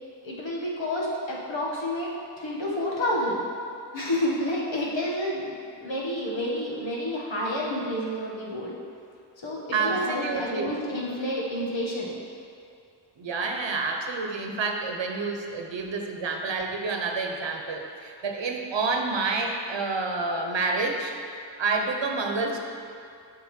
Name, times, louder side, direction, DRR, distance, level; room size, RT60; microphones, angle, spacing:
voice 1, 0.2-3.4 3.9-5.5 5.8-8.7 9.4-12.1, left 1 dB, 75° left, -4 dB, 1.6 m, -29 dB
voice 2, 9.7-10.7 13.2-21.1 21.6-22.6, right 4 dB, 70° right, 3 dB, 1.0 m, -28 dB
8.7 x 5.4 x 4.4 m, 2.5 s
wide cardioid pair, 60°, 46 cm